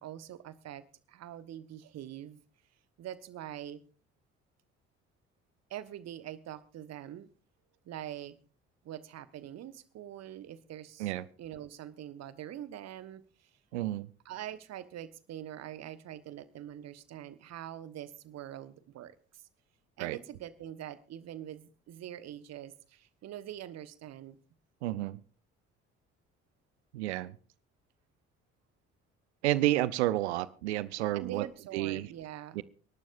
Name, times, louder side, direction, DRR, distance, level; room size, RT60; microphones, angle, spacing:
voice 1, 0.0-2.4 3.0-3.8 5.7-7.3 7.8-8.4 8.8-11.1 11.4-13.5 14.2-19.4 20.0-24.4 31.1-32.6, right 11 dB, 50° right, 15 dB, 1.2 m, -44 dB
voice 2, 13.7-14.1 20.0-20.2 24.8-25.2 26.9-27.4 29.4-31.4 31.7-32.1 32.5-32.6, right 16 dB, 70° right, 19 dB, 0.6 m, -30 dB
29.5 x 12.0 x 2.5 m, 0.34 s
figure-of-eight pair, 45°, 35 cm